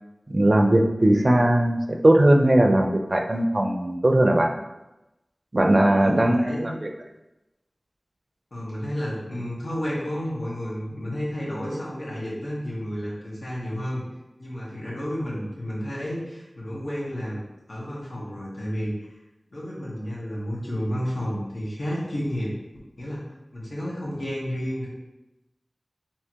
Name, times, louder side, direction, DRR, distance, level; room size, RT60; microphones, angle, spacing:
voice 1, 0.3-4.5 5.5-6.9, right 1 dB, 45° right, 3 dB, 0.5 m, -19 dB
voice 2, 6.0-6.7 8.5-14.1 14.4-17.4 17.7-18.9 19.5-22.5 23.0-23.2 23.5-24.9, equal, 75° left, -6 dB, 1.5 m, -31 dB
3.5 x 2.9 x 4.5 m, 0.95 s
wide cardioid pair, 60°, 0 cm